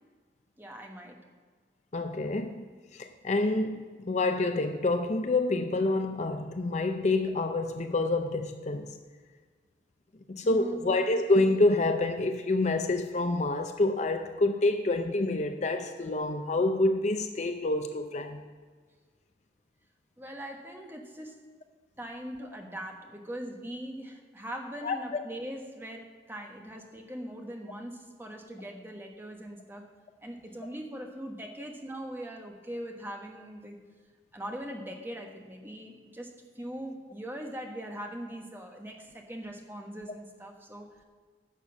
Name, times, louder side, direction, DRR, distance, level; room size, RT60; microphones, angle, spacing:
voice 1, 0.6-1.2 10.4-11.2 20.2-21.4 22.0-29.9 30.2-33.8 34.3-41.0, equal, 10° right, 1.2 m, -41 dB
voice 2, 1.9-2.6 2.9-8.9 10.3-18.4 24.8-25.2, left 2 dB, 40° left, 0.5 m, -27 dB
11.0 x 6.8 x 7.1 m
head